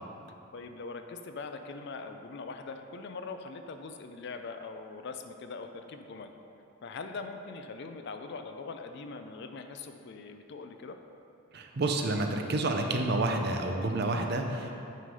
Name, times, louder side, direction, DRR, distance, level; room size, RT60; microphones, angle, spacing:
voice 1, 0.5-6.3 6.8-11.0, left 4 dB, 55° left, 7 dB, 0.4 m, -42 dB
voice 2, 11.5-14.7, right 2 dB, 50° right, 3 dB, 0.6 m, -29 dB
9.2 x 3.3 x 5.3 m, 2.7 s
head